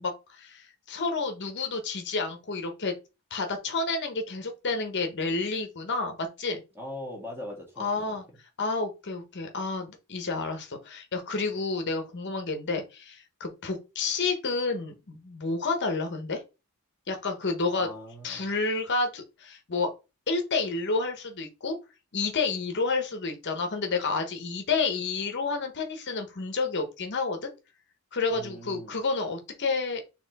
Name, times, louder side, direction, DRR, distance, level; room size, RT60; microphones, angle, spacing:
voice 1, 0.0-2.9 3.3-6.6 7.8-8.2 8.6-16.4 17.1-17.9 18.2-19.9 20.3-21.8 22.1-27.5 28.1-30.0, left 3 dB, 50° left, 0.8 m, -30 dB
voice 2, 6.7-8.2 17.7-18.5 28.3-29.0, left 1 dB, 10° right, 1.5 m, -41 dB
4.2 x 2.9 x 4.0 m
head